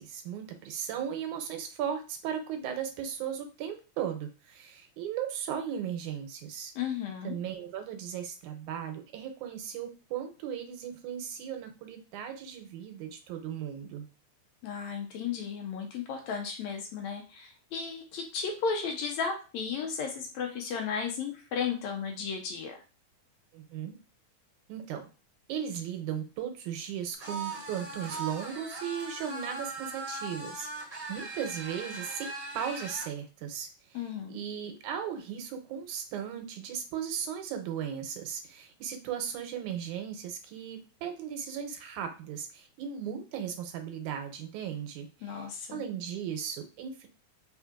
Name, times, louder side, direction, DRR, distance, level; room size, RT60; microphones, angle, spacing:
voice 1, 0.0-6.7 7.2-14.1 23.5-24.0 24.7-25.1 25.5-30.7 31.1-47.1, right 8 dB, 85° right, 6 dB, 2.1 m, -37 dB
voice 2, 6.8-7.4 14.6-22.8 33.9-34.4 45.2-45.8, left 6 dB, 75° left, 3 dB, 1.9 m, -34 dB
sound 1, 27.2-33.1, right 3 dB, 30° right, 0.6 m, -39 dB
4.4 x 3.6 x 2.4 m, 0.33 s
omnidirectional pair, 3.5 m